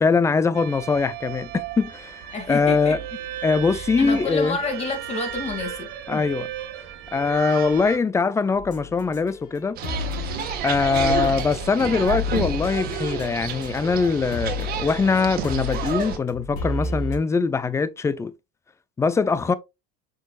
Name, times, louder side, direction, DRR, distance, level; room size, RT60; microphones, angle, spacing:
voice 1, 0.0-3.0 3.4-4.6 6.1-6.5 7.1-9.8 10.6-18.3 19.0-19.5, left 4 dB, 15° left, 0.6 m, -22 dB
sound 1, 0.5-8.0, right 11 dB, 65° right, 1.5 m, -35 dB
voice 2, 2.3-3.0 3.7-6.2, left 3 dB, 30° left, 2.6 m, -29 dB
sound 2, 8.5-14.0 14.3-17.2, left 3 dB, 65° left, 4.1 m, -32 dB
sound 3, 9.8-16.2, right 7 dB, 45° right, 1.6 m, -30 dB
6.6 x 6.4 x 2.5 m
cardioid pair, 140°, 21 cm